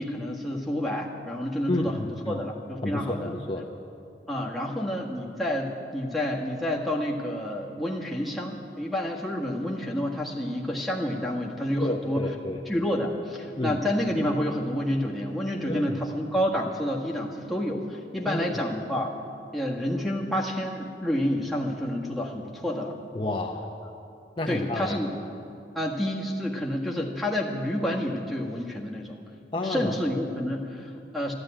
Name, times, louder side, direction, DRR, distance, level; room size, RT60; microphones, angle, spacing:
voice 1, 0.0-3.3 4.3-12.2 12.7-19.2 19.5-22.9 24.5-25.1 25.7-29.2 29.6-31.3, left 1 dB, ahead, 0 dB, 1.6 m, -29 dB
voice 2, 1.7-2.4 2.8-3.6 11.8-12.6 13.6-13.8 15.7-15.9 18.3-18.5 23.1-23.6 24.4-25.0 29.5-29.9, left 1 dB, 30° left, 1 dB, 0.8 m, -30 dB
13.0 x 12.5 x 8.9 m, 2.6 s
head